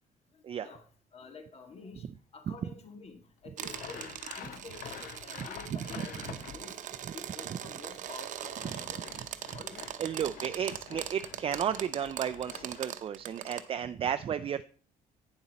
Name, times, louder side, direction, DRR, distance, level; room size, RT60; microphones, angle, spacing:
voice 1, 0.3-2.1 2.3-6.9 7.1-9.1 9.5-9.9 13.7-13.8, left 3 dB, 45° left, 7 dB, 1.7 m, -49 dB
Sawing, 3.6-6.8 8.2-12.8, left 9 dB, 75° left, 0.7 m, -47 dB
sound 1, 3.6-13.6, right 10 dB, 60° right, 0.8 m, -41 dB
voice 2, 10.0-14.6, right 8 dB, 40° right, 10 dB, 0.4 m, -33 dB
8.9 x 7.2 x 4.1 m, 0.43 s
cardioid pair, 85°, 14 cm